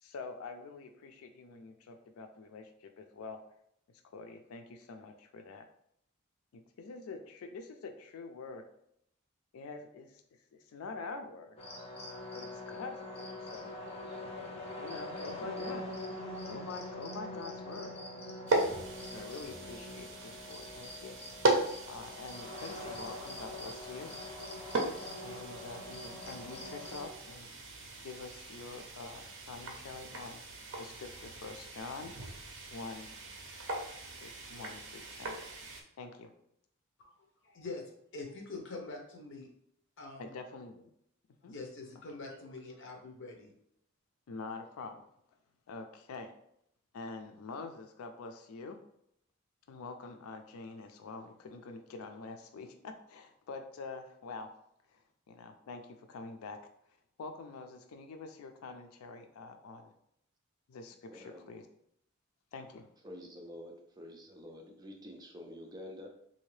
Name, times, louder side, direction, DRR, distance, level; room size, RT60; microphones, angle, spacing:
voice 1, 0.0-3.4 4.1-5.7 6.5-8.6 9.5-10.2 10.5-11.6 12.3-13.7 14.8-15.8 16.5-17.9 19.1-21.2 21.9-24.1 25.2-27.5 28.0-30.4 30.8-32.1 32.7-33.1 34.2-35.4 36.0-36.3 40.2-40.9 41.4-41.5 44.3-45.0 45.7-46.3 46.9-48.8 49.7-54.5 54.9-55.0 55.3-56.6 57.2-59.9 60.7-61.7 62.5-62.9, left 4 dB, 85° left, 6 dB, 0.4 m, -46 dB
sound 1, 11.6-27.1, left 1 dB, 30° left, 0.7 m, -44 dB
sound 2, 18.5-35.8, right 2 dB, 60° right, 0.7 m, -38 dB
voice 2, 37.4-37.8 38.1-39.5 40.0-40.3 41.4-43.5, left 3 dB, 60° left, 1 dB, 0.8 m, -44 dB
voice 3, 61.1-61.5 63.0-66.1, left 1 dB, 20° right, 1 dB, 0.5 m, -48 dB
3.4 x 2.7 x 3.2 m, 0.74 s
head